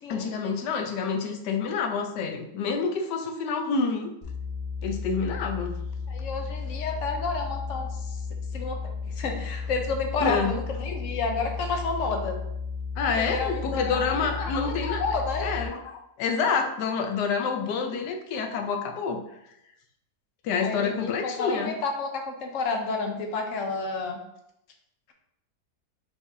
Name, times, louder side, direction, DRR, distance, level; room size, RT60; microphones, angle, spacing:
voice 1, 0.1-4.1 4.8-5.8 10.2-10.5 13.0-15.0 15.4-19.2 20.4-21.7, left 5 dB, 90° left, 4 dB, 1.3 m, -28 dB
sound 1, 4.2-15.7, left 5 dB, 40° left, 0.7 m, -34 dB
voice 2, 6.1-8.2 8.5-12.4 13.2-15.5 20.6-24.2, left 4 dB, 65° left, 4 dB, 0.9 m, -31 dB
4.8 x 3.5 x 2.6 m, 0.82 s
omnidirectional pair, 1.7 m